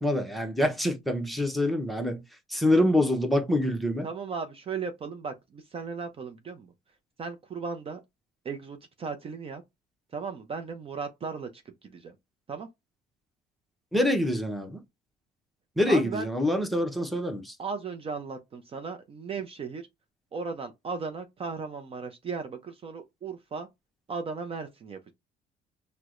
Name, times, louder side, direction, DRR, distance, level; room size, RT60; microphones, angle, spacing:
voice 1, 0.0-2.2 2.5-4.1 13.9-14.8 15.8-17.5, left 1 dB, ahead, 0.8 m, -25 dB
voice 2, 4.0-6.7 7.2-8.0 8.4-9.6 10.1-12.2 12.5-12.7 15.9-16.3 17.6-19.9 20.3-23.7 24.1-25.1, right 5 dB, 35° right, 0.5 m, -36 dB
4.4 x 2.1 x 2.5 m
cardioid pair, 110°, 17 cm